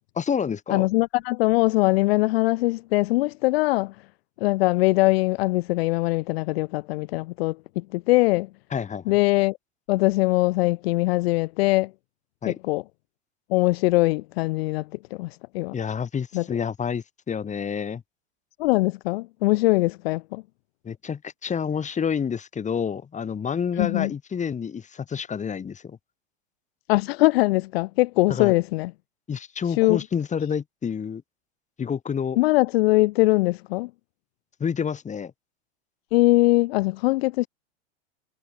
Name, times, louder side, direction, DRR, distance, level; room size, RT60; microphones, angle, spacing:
voice 1, 0.2-0.9 8.7-9.2 12.4-12.6 15.7-18.0 20.8-26.0 28.3-28.5 29.3-31.2 31.8-32.4 34.6-35.3, left 7 dB, 20° left, 4.2 m, -28 dB
voice 2, 0.7-3.9 4.4-8.5 9.1-9.6 9.9-11.9 12.5-12.8 13.5-14.8 15.2-15.3 15.5-15.7 16.3-16.4 18.6-20.4 23.8-24.1 26.9-28.9 29.8-30.0 32.4-33.9 36.1-37.5, left 21 dB, 65° left, 0.8 m, -21 dB
hypercardioid pair, 110°, 33 cm